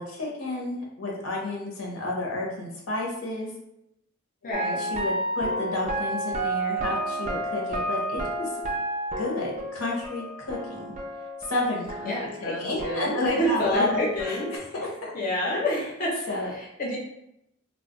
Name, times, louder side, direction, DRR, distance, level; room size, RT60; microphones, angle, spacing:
voice 1, 0.0-3.5 4.4-8.5 9.2-10.9 11.5-15.1 15.7-15.8 16.3-16.5, left 2 dB, 90° left, -2 dB, 0.8 m, -31 dB
voice 2, 4.4-4.8 12.0-14.5 15.1-16.2 16.5-17.0, equal, 40° left, -3 dB, 0.5 m, -28 dB
sound 1, 4.5-12.5 12.8-14.6, right 1 dB, 35° right, 0.4 m, -31 dB
2.3 x 2.0 x 3.7 m, 0.82 s
head